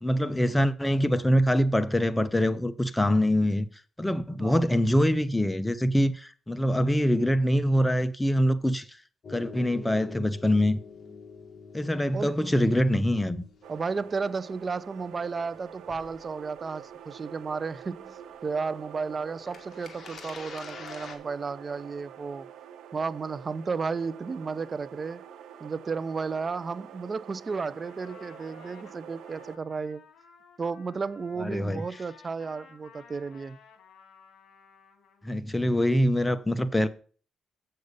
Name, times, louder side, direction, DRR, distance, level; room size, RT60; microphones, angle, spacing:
voice 1, 0.0-3.7 4.0-8.9 9.3-10.8 11.7-13.4 31.4-31.8 35.2-36.9, equal, 10° left, 0.8 m, -24 dB
sound 1, 9.2-15.2 15.5-16.3 18.0-18.1 18.3-18.4 19.5-21.2, left 5 dB, 45° left, 1.9 m, -46 dB
voice 2, 12.1-12.7 13.7-22.5 22.9-25.2 25.6-30.1 30.6-33.6, right 4 dB, 35° right, 0.5 m, -33 dB
sound 2, 13.6-29.6, right 9 dB, 80° right, 1.0 m, -47 dB
Trumpet, 27.5-35.3, left 6 dB, 65° left, 2.7 m, -55 dB
7.8 x 6.7 x 5.3 m
cardioid pair, 90°, 0 cm